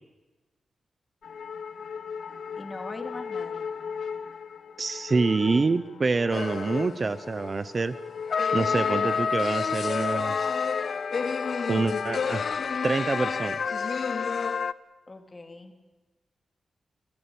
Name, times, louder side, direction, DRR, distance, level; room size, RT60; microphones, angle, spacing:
sound 1, 1.2-12.5, left 6 dB, 85° left, 1.1 m, -37 dB
voice 1, 2.6-3.7 15.1-15.7, left 2 dB, 25° left, 5 dB, 2.5 m, -41 dB
voice 2, 4.8-8.0 8.5-10.4 11.7-12.4 12.8-13.6, right 4 dB, 35° right, 13 dB, 0.7 m, -26 dB
sound 2, 6.3-7.1 8.3-14.7, left 6 dB, 55° left, 0.7 m, -28 dB
30.0 x 15.5 x 8.6 m, 1.2 s
wide cardioid pair, 150°, 0 cm